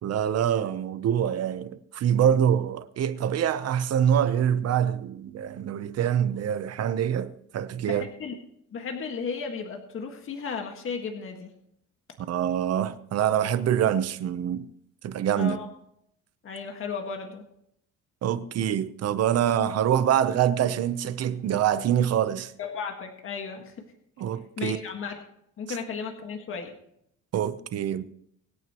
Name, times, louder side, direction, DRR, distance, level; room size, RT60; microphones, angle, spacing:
voice 1, 0.0-8.1 12.2-14.6 15.0-15.6 18.2-22.5 24.2-24.8 27.3-28.0, right 9 dB, 50° right, 0.9 m, -25 dB
voice 2, 7.9-8.3 8.7-11.5 15.3-15.7 16.4-17.4 22.6-23.7 24.6-25.2 25.6-26.7, left 5 dB, 40° left, 1.7 m, -34 dB
24.0 x 9.3 x 3.0 m
cardioid pair, 155°, 32 cm